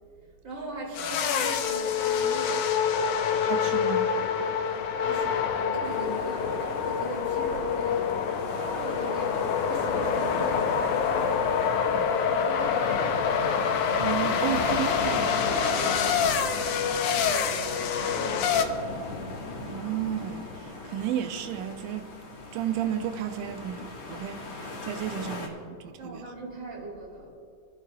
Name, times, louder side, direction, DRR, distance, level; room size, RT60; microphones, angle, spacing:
voice 1, 0.4-2.7 3.1-3.2 4.9-8.0 8.7-11.6 12.4-13.2 14.5-16.2 16.6-17.7 18.1-18.9 26.0-27.3, right 2 dB, 25° right, 2.7 m, -41 dB
sound 1, 0.9-18.6, left 7 dB, 75° left, 2.0 m, -26 dB
voice 2, 3.4-4.1 11.9-12.1 14.0-15.2 19.6-22.1 22.5-26.2, right 10 dB, 80° right, 1.9 m, -33 dB
sound 2, 5.8-25.5, left 2 dB, 50° left, 2.0 m, -37 dB
25.0 x 13.0 x 2.3 m
omnidirectional pair, 4.1 m